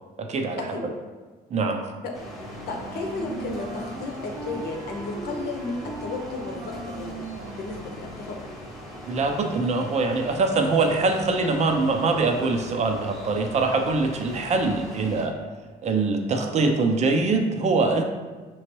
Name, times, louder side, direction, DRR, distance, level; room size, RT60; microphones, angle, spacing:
voice 1, 0.2-0.9 1.5-1.8 9.1-15.5 15.8-18.0, right 3 dB, 40° right, 4 dB, 0.6 m, -23 dB
sound 1, 2.1-15.3, left 1 dB, ahead, 0.8 m, -40 dB
Wind instrument woodwind instrument, 2.3-8.4, right 3 dB, 90° right, 0.5 m, -39 dB
voice 2, 2.5-7.3 7.6-8.5, left 3 dB, 70° left, 2 dB, 0.8 m, -33 dB
5.5 x 3.0 x 3.0 m, 1.3 s
cardioid pair, 110°, 17 cm